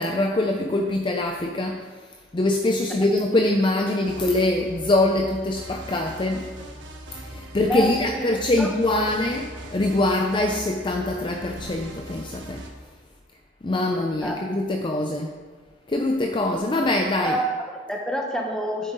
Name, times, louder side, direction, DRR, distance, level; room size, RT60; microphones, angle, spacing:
voice 1, 0.0-1.8 2.3-6.5 7.3-9.5 9.7-12.7 13.6-15.3 15.9-17.3, left 2 dB, 25° left, 3 dB, 0.5 m, -23 dB
sound 1, 4.0-12.7, right 1 dB, 85° right, 1.3 m, -40 dB
voice 2, 7.4-8.3 8.6-9.1 14.2-14.3 17.2-18.9, right 1 dB, 5° left, 0 dB, 1.2 m, -28 dB
10.0 x 7.8 x 4.0 m, 1.5 s
head